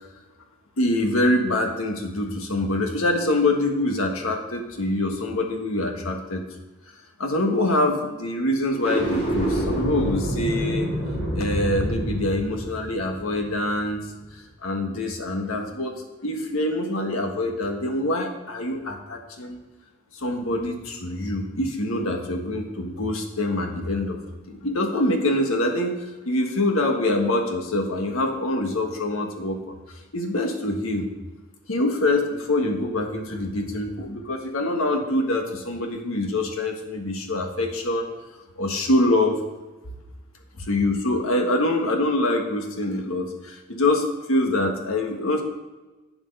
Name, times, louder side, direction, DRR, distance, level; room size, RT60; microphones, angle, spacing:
voice 1, 0.8-6.4 7.2-10.9 11.3-14.0 14.6-15.9 16.2-19.6 20.1-24.2 24.5-25.9 26.2-29.8 30.1-31.1 31.7-38.1 38.6-39.4 40.6-45.4, left 1 dB, 80° left, 3 dB, 1.5 m, -25 dB
sound 1, 8.7-14.0, equal, 30° left, 3.4 m, -27 dB
8.9 x 7.4 x 5.5 m, 1.2 s
head